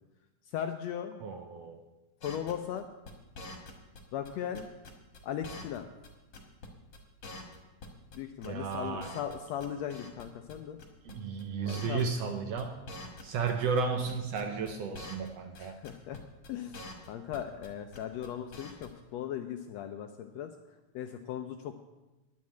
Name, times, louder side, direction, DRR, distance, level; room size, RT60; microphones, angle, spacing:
voice 1, 0.5-1.2 2.2-2.9 4.1-4.7 5.2-5.9 8.1-10.8 11.6-12.1 15.6-16.2 16.5-20.5 20.9-21.8, left 9 dB, 80° left, 7 dB, 1.6 m, -38 dB
voice 2, 1.2-1.8 8.4-9.2 11.0-12.8 13.2-15.8, right 5 dB, 70° right, 6 dB, 1.6 m, -33 dB
sound 1, 2.2-4.0 4.2-5.8 6.0-6.1 6.3-6.7 6.9-7.0 7.2-8.2 8.4-9.3 9.6-10.2 10.5-10.6 10.8-11.1 11.4-11.5 11.7-12.3 12.6-13.8 14.1-15.3 15.5-15.6 15.8-16.2 16.4-17.7 17.9-18.3 18.5-18.9, left 2 dB, 45° left, 1.9 m, -45 dB
10.5 x 6.3 x 8.5 m, 1.1 s
omnidirectional pair, 3.5 m